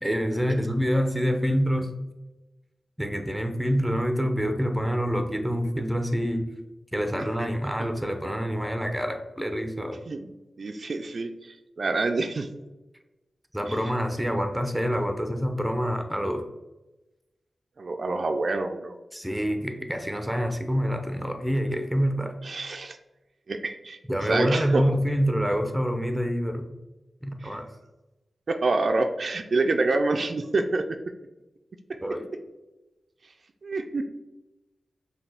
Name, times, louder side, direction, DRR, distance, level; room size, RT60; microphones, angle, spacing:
voice 1, 0.0-1.9 3.0-6.4 6.9-10.0 13.5-16.4 19.1-22.4 24.1-26.7 27.2-27.7 32.0-32.3, equal, 5° right, 6 dB, 0.5 m, -26 dB
voice 2, 10.6-12.5 13.7-13.8 17.8-19.0 22.4-23.0 23.5-24.8 27.4-27.5 28.5-30.8 33.6-34.0, right 3 dB, 60° right, 6 dB, 0.3 m, -27 dB
5.6 x 2.3 x 3.4 m, 1.0 s
wide cardioid pair, 80°, 0 cm